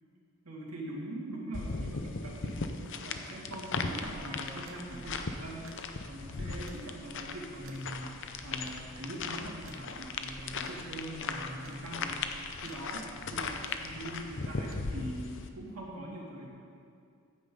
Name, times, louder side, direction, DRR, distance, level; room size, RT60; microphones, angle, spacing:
voice 1, 0.4-13.0 13.3-16.5, right 1 dB, 85° right, -4 dB, 2.5 m, -42 dB
sound 1, 1.5-15.5, left 4 dB, 55° left, 0.7 m, -38 dB
sound 2, 3.9-14.8, right 1 dB, 60° right, 1.0 m, -53 dB
15.0 x 9.0 x 3.9 m, 2.5 s
head